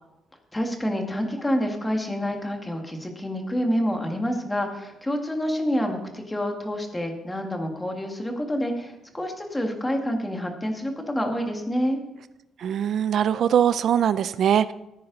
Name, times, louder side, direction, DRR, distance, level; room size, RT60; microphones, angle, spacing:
voice 1, 0.5-12.0, equal, 10° left, 3 dB, 1.8 m, -27 dB
voice 2, 12.6-14.7, right 9 dB, 55° right, 15 dB, 0.4 m, -21 dB
14.5 x 9.5 x 4.0 m, 0.94 s
cardioid pair, 145°, 0 cm